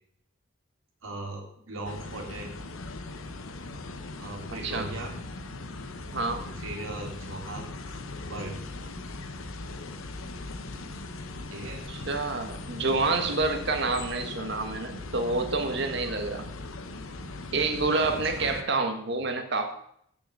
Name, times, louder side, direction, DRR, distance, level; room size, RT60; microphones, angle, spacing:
voice 1, 1.0-2.5 4.2-5.2 6.2-7.7 8.3-8.6 11.5-11.8 18.0-18.5, right 2 dB, 75° right, 0 dB, 2.5 m, -39 dB
sound 1, 1.8-18.6, left 2 dB, 75° left, 0.9 m, -39 dB
voice 2, 4.5-4.9 6.1-6.4 11.6-16.4 17.5-19.7, right 3 dB, 55° right, 6 dB, 1.3 m, -28 dB
6.5 x 6.3 x 7.6 m, 0.70 s
head